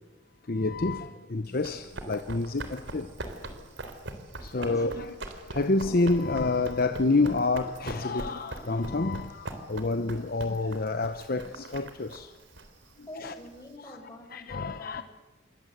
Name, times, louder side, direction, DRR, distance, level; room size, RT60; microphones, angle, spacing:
voice 1, 0.5-3.1 4.4-5.1 5.5-12.3 13.2-13.3 14.3-15.0, left 3 dB, 50° left, 0.9 m, -28 dB
Run, 1.4-13.7, right 2 dB, 75° right, 3.6 m, -42 dB
voice 2, 4.6-5.1 12.8-15.0, left 1 dB, 20° left, 6.6 m, -47 dB
27.5 x 23.0 x 8.0 m
head